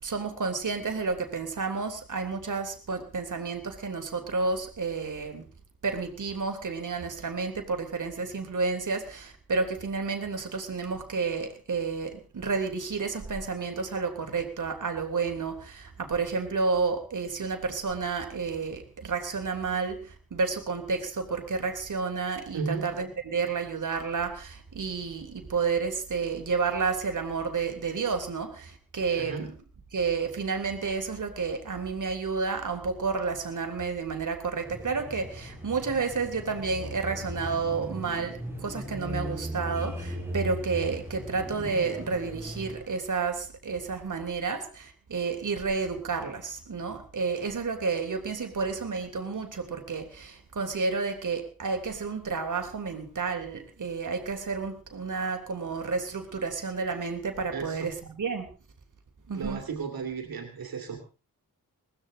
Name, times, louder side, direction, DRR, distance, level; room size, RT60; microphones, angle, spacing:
voice 1, 0.0-5.5 5.8-29.6 29.9-58.5 59.3-59.7, right 4 dB, 60° right, 5 dB, 3.2 m, -31 dB
voice 2, 22.5-22.9 29.2-29.5 57.5-57.8 59.3-61.0, right 5 dB, 85° right, 4 dB, 2.6 m, -34 dB
sound 1, 34.7-42.8, equal, 5° right, 6.9 m, -37 dB
19.5 x 15.5 x 3.8 m, 0.35 s
cardioid pair, 75°, 35 cm